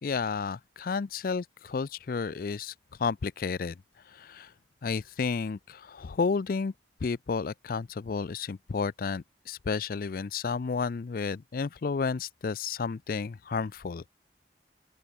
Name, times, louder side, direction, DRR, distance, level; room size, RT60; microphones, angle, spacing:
voice 1, 0.0-2.7 3.0-3.8 4.1-4.5 4.8-6.7 7.0-14.1, left 5 dB, 50° left, 0.4 m, -31 dB
open air
head